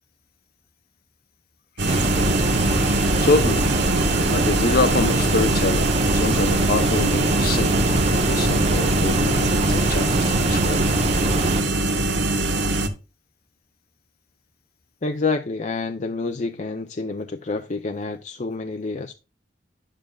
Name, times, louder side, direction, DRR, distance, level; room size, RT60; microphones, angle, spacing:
voice 1, 1.8-2.1 2.5-3.6 4.2-10.8, left 3 dB, 55° left, 1.0 m, -26 dB
sound 1, 1.8-12.9, right 2 dB, 75° right, 1.3 m, -23 dB
sound 2, 1.9-11.6, right 2 dB, 35° right, 0.9 m, -23 dB
voice 2, 15.0-19.1, left 3 dB, 40° left, 0.6 m, -28 dB
9.8 x 7.4 x 2.3 m
head